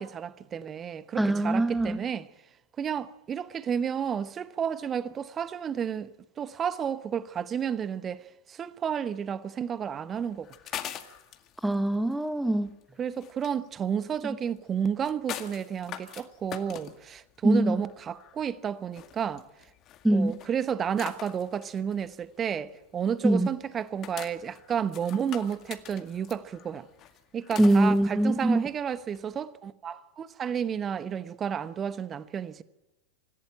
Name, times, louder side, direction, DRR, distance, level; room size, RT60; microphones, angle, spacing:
voice 1, 0.0-2.3 2.8-6.1 6.4-10.5 13.0-19.5 20.1-26.9 27.3-32.6, right 8 dB, 25° right, 1.0 m, -31 dB
voice 2, 1.2-2.0 11.6-12.7 17.4-17.8 20.0-20.4 23.2-23.5 27.6-28.6, right 1 dB, 5° right, 1.2 m, -23 dB
sound 1, 10.1-29.3, left 11 dB, 35° left, 2.0 m, -44 dB
26.0 x 16.0 x 9.0 m
figure-of-eight pair, 90°, 0 cm